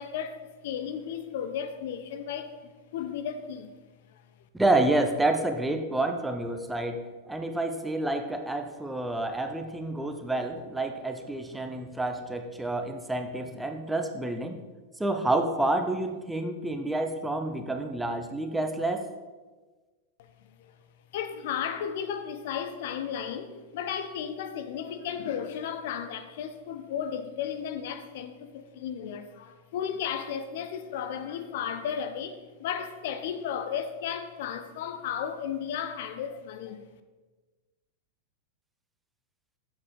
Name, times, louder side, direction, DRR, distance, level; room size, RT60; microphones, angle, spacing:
voice 1, 0.0-3.7 4.1-4.2 20.6-20.7 21.1-36.9, left 8 dB, 55° left, 9 dB, 0.7 m, -34 dB
voice 2, 4.5-7.0 7.3-14.6 15.0-19.1, right 2 dB, 5° right, 6 dB, 0.9 m, -29 dB
8.4 x 7.5 x 5.0 m, 1.3 s
figure-of-eight pair, 90°, 0 cm